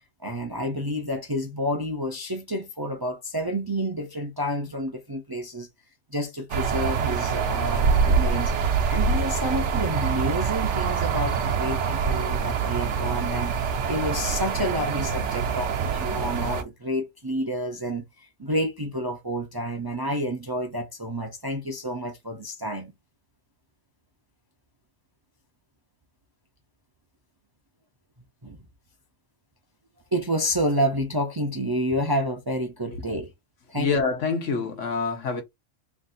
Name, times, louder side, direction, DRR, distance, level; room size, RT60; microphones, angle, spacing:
voice 1, 0.2-5.7 6.1-8.5 8.9-22.9 28.4-28.6 30.1-33.3 33.7-33.9, equal, 25° right, 0.5 m, -29 dB
sound 1, 6.5-16.6, right 5 dB, 65° right, 1.0 m, -25 dB
voice 2, 33.8-35.4, left 5 dB, 70° left, 1.3 m, -26 dB
3.3 x 2.6 x 4.0 m
omnidirectional pair, 1.3 m